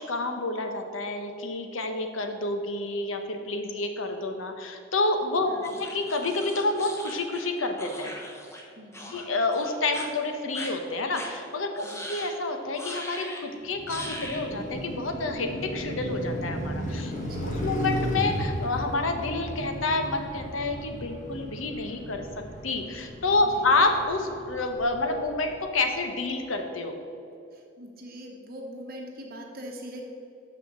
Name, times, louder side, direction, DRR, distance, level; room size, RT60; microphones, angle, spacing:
voice 1, 0.1-8.1 9.1-17.1 17.4-22.3 22.6-26.9, left 2 dB, 85° left, 5 dB, 0.9 m, -28 dB
voice 2, 5.5-5.8 8.8-9.1 11.8-12.1 17.2-17.5 23.4-23.6 27.8-30.0, equal, 50° right, 1 dB, 0.9 m, -42 dB
sound 1, 5.6-8.6 8.9-9.3 9.5-10.1 10.5-10.7 11.1-11.3 11.8-12.3 12.8-13.4 13.9-14.5, left 1 dB, 15° left, 1.0 m, -40 dB
Car passing by, 13.6-25.8, equal, 40° left, 1.6 m, -35 dB
6.2 x 5.9 x 7.2 m, 2.5 s
head